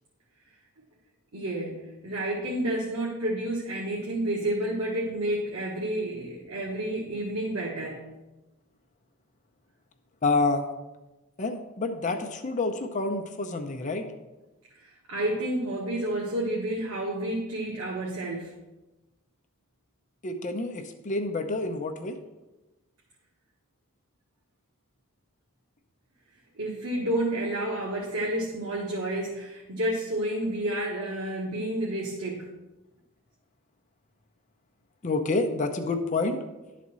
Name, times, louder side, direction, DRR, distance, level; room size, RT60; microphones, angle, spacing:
voice 1, 1.3-8.0 14.7-18.5 26.6-32.5, right 1 dB, 85° right, -4 dB, 1.4 m, -30 dB
voice 2, 10.2-10.7 11.4-14.1 20.2-22.2 35.0-36.4, left 3 dB, 35° left, 5 dB, 0.6 m, -28 dB
11.5 x 4.2 x 6.1 m, 1.1 s
head